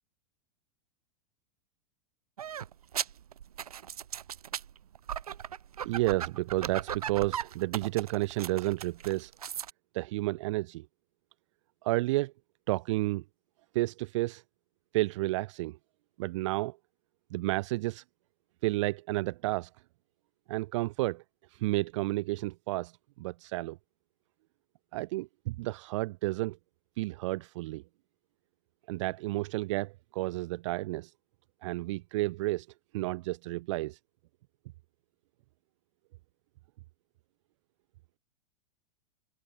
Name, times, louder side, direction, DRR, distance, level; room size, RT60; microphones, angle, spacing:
sound 1, 2.4-9.7, right 9 dB, 70° right, 1.5 m, -37 dB
voice 1, 5.8-9.3 9.9-10.9 11.8-12.3 12.7-13.2 13.7-14.4 14.9-15.8 16.2-16.8 17.3-18.0 18.6-19.7 20.5-21.2 21.5-22.9 23.2-23.8 24.9-26.6 27.0-27.8 28.9-31.1 31.6-32.7 32.9-34.0, right 19 dB, 50° right, 1.0 m, -31 dB
open air
figure-of-eight pair, 95°, 20 cm